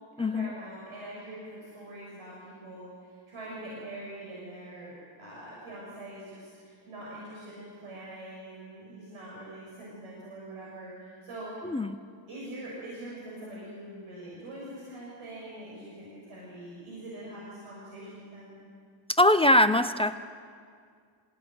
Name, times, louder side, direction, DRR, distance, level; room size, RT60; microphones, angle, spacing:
voice 1, 0.2-11.6 12.3-18.6, right 1 dB, 85° right, -5 dB, 7.3 m, -43 dB
voice 2, 11.6-12.0 19.2-20.2, left 1 dB, 10° left, 9 dB, 0.6 m, -22 dB
27.5 x 18.0 x 9.3 m, 2.2 s
cardioid pair, 135°, 48 cm